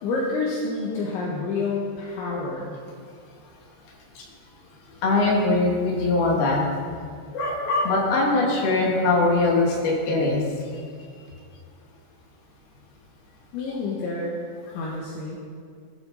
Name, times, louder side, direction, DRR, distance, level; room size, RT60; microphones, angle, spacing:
voice 1, 0.0-2.8 13.5-14.4 14.7-15.4, left 3 dB, 70° left, -3 dB, 3.8 m, -28 dB
voice 2, 5.0-6.6 7.3-10.4, left 2 dB, 55° left, -2 dB, 4.2 m, -21 dB
21.0 x 13.5 x 4.2 m, 2.2 s
omnidirectional pair, 5.6 m